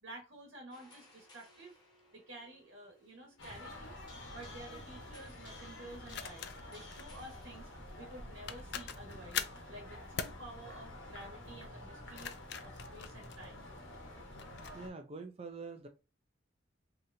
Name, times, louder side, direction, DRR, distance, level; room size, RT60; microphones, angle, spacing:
voice 1, 0.0-1.8 2.1-4.0 4.3-7.7 8.0-12.4 12.6-13.7, right 1 dB, 85° right, 1 dB, 1.0 m, -51 dB
sound 1, 0.7-8.9 9.3-9.5 10.5-12.8 13.3-13.4, left 3 dB, 20° left, 0.8 m, -60 dB
sound 2, 3.4-14.9, left 1 dB, 80° left, 1.1 m, -49 dB
sound 3, 3.7-3.9 6.1-7.1 8.1-8.2 8.5-9.6 10.2-10.4 11.9-13.8 14.4-14.8, left 8 dB, 60° left, 0.3 m, -42 dB
voice 2, 14.7-15.9, right 4 dB, 30° right, 6 dB, 0.3 m, -45 dB
3.3 x 2.8 x 2.5 m, 0.30 s
head